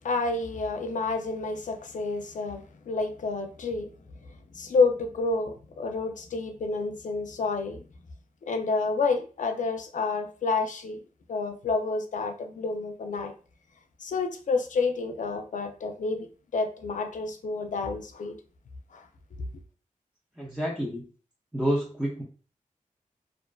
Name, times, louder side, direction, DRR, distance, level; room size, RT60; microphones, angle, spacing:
voice 1, 0.0-3.9 4.3-7.8 8.4-11.0 11.3-13.3 14.0-16.3 16.5-18.4 18.9-19.1 19.4-19.5, left 3 dB, 65° left, 0.4 m, -29 dB
voice 2, 20.4-21.1 21.5-22.2, equal, 5° right, 0.6 m, -29 dB
2.4 x 2.4 x 2.2 m
wide cardioid pair, 105°, 14 cm